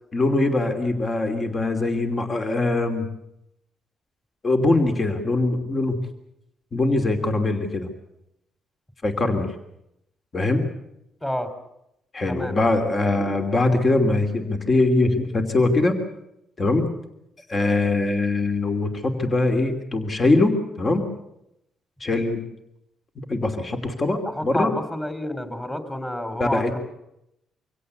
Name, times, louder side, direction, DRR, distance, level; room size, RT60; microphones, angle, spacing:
voice 1, 0.1-3.1 4.4-6.0 6.7-7.9 9.0-9.5 10.3-10.7 12.1-16.0 16.6-16.9 17.5-21.1 22.0-22.5 23.3-24.8 26.4-26.7, left 2 dB, 35° left, 6 dB, 2.9 m, -22 dB
voice 2, 12.3-12.6 13.2-13.3 24.3-26.8, left 1 dB, 10° left, 9 dB, 3.4 m, -29 dB
24.5 x 17.0 x 8.2 m, 0.82 s
cardioid pair, 90°, 0 cm